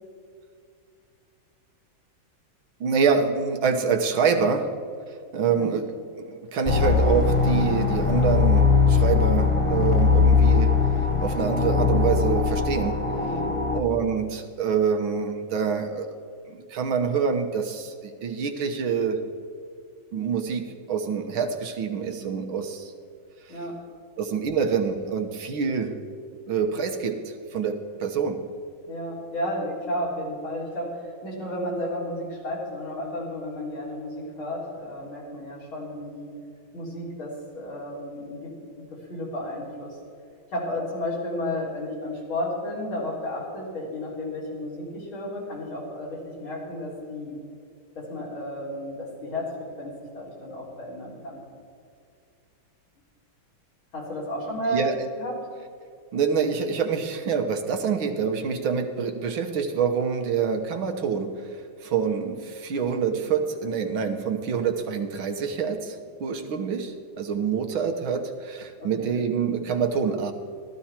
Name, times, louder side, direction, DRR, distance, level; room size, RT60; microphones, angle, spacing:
voice 1, 2.8-4.7 5.3-10.7 11.2-13.0 13.7-16.1 16.5-19.2 20.1-22.9 23.5-23.6 24.2-26.0 26.5-28.4 54.7-55.0 56.1-61.3 61.8-70.3, right 6 dB, 75° right, 5 dB, 1.9 m, -26 dB
sound 1, 6.6-13.8, left 5 dB, 30° left, 0.5 m, -21 dB
voice 2, 13.2-13.6 23.5-23.8 28.9-36.3 36.7-40.0 40.5-47.4 47.9-49.5 49.8-51.4 53.9-54.8 55.2-55.4 68.8-69.1, left 1 dB, 75° left, -5 dB, 4.5 m, -33 dB
14.5 x 14.0 x 4.4 m, 2.3 s
omnidirectional pair, 2.2 m